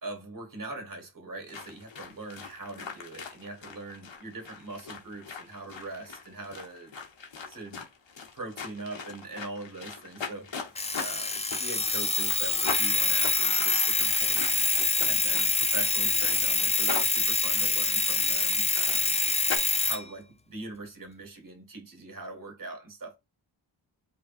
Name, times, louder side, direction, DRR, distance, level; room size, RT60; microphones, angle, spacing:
voice 1, 0.0-6.9 7.5-7.9 8.3-10.7 10.9-14.6 14.9-19.2 19.8-23.2, right 2 dB, 45° right, 1.9 m, -41 dB
sound 1, 1.5-19.6, left 5 dB, 70° left, 1.2 m, -41 dB
Alarm, 10.8-20.0, left 3 dB, 15° left, 0.4 m, -26 dB
5.3 x 2.3 x 4.1 m
wide cardioid pair, 80°, 46 cm